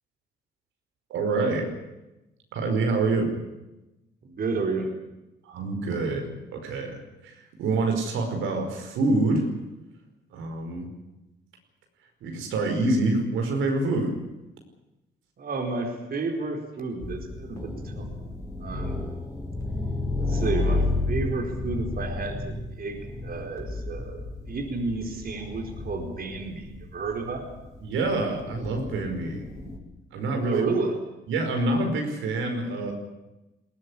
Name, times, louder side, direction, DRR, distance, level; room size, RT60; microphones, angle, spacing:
voice 1, 1.1-1.7 2.5-3.3 5.5-9.5 10.3-10.9 12.2-14.2 27.8-29.5 30.1-30.6 31.3-32.9, right 2 dB, 85° right, 4 dB, 5.2 m, -26 dB
voice 2, 4.2-4.9 15.4-19.0 20.2-24.2 24.5-27.5 30.4-31.0, right 3 dB, 50° right, 3 dB, 4.4 m, -31 dB
sound 1, 17.0-29.8, left 2 dB, 15° left, 6.4 m, -32 dB
20.5 x 18.0 x 10.0 m, 0.98 s
cardioid pair, 90°, 20 cm